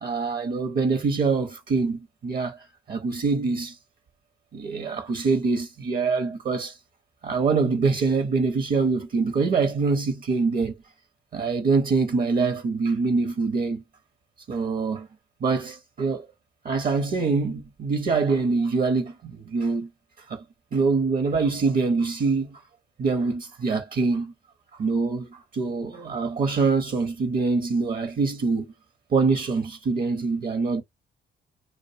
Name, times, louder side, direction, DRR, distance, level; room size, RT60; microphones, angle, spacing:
voice 1, 0.0-3.8 4.5-6.8 7.2-10.8 11.3-13.8 14.5-15.1 15.4-16.3 16.6-19.9 20.2-20.4 20.7-22.6 23.0-24.3 24.8-28.7 29.1-30.8, right 4 dB, 45° right, 0.6 m, -24 dB
2.5 x 2.0 x 2.5 m
cardioid pair, 90°, 20 cm